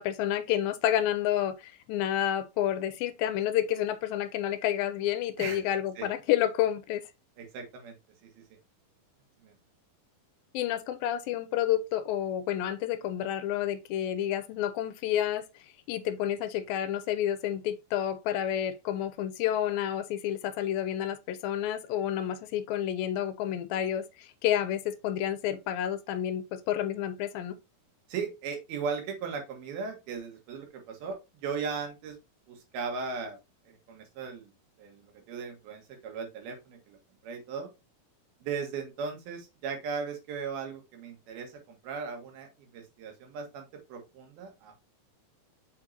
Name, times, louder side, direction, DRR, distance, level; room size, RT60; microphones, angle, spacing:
voice 1, 0.0-7.0 10.5-15.4 15.9-27.6, left 11 dB, 85° left, 2.4 m, -30 dB
voice 2, 7.4-8.0 8.2-8.4 9.4-9.6 28.1-32.2 32.5-33.4 33.7-34.5 34.8-37.7 38.4-44.9, right 5 dB, 80° right, 3.5 m, -37 dB
6.6 x 5.0 x 2.8 m
omnidirectional pair, 4.2 m